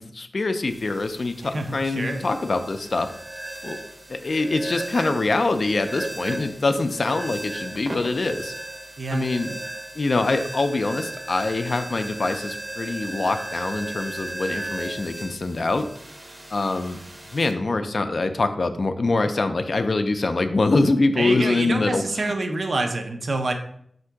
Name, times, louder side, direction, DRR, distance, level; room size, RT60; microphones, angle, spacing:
voice 1, 0.1-3.1 3.6-3.8 4.1-8.5 9.1-9.6 10.0-15.9 16.5-17.0 17.3-22.3, left 3 dB, 60° left, 8 dB, 0.3 m, -24 dB
sound 1, 0.7-17.5, right 1 dB, 30° right, 0.6 m, -36 dB
voice 2, 1.4-2.2 9.0-9.3 21.2-23.5, right 2 dB, 70° right, 6 dB, 0.5 m, -27 dB
3.6 x 2.5 x 4.5 m, 0.69 s
wide cardioid pair, 80°, 0 cm